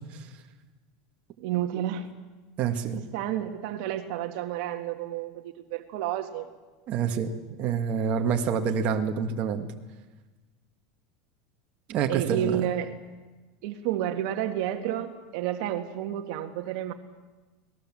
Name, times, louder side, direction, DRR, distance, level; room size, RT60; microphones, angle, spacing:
voice 1, 1.4-2.1 2.9-6.5 12.1-12.9 13.6-16.9, right 11 dB, 65° right, 5 dB, 1.8 m, -30 dB
voice 2, 2.6-3.0 6.9-7.3 7.6-9.7 11.9-12.6, right 7 dB, 45° right, 4 dB, 1.9 m, -27 dB
26.0 x 19.0 x 7.6 m, 1.3 s
supercardioid pair, 125°, 4 cm